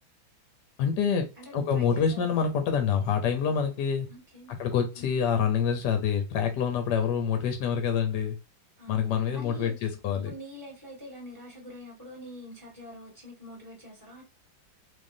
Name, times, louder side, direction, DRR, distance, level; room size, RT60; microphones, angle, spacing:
voice 1, 0.8-1.3 1.5-4.1 4.6-8.4 8.9-10.3, left 7 dB, 65° left, 1.2 m, -26 dB
voice 2, 1.4-2.4 4.1-4.6 4.9-5.2 8.8-14.2, equal, 10° left, 1.3 m, -45 dB
3.7 x 3.2 x 2.6 m
omnidirectional pair, 2.2 m